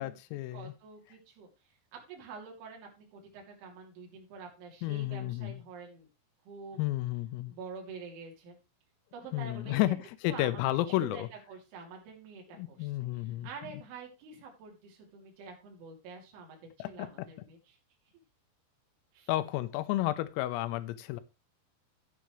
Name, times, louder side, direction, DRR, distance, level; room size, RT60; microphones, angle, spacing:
voice 1, 0.0-0.7 4.8-5.6 6.8-7.5 9.3-10.0 10.2-11.3 12.6-13.5 16.8-17.1 19.3-21.2, left 16 dB, 90° left, 12 dB, 3.5 m, -31 dB
voice 2, 0.5-1.5 1.9-6.1 6.5-6.8 7.5-8.6 9.1-10.0 10.3-11.2 11.5-17.8 19.1-19.3, right 4 dB, 70° right, -1 dB, 5.2 m, -47 dB
12.5 x 9.4 x 3.2 m, 0.28 s
omnidirectional pair, 5.9 m